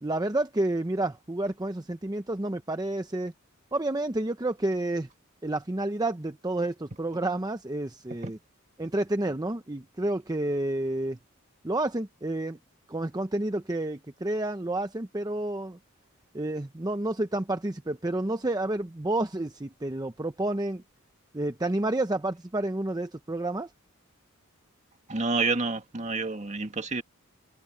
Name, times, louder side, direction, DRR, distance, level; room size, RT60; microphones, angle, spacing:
voice 1, 0.0-3.3 3.7-5.1 5.4-8.4 8.8-11.2 11.6-12.6 12.9-15.8 16.3-20.8 21.3-23.7, right 2 dB, 20° right, 0.7 m, -30 dB
voice 2, 25.1-27.0, right 3 dB, 35° right, 1.9 m, -28 dB
head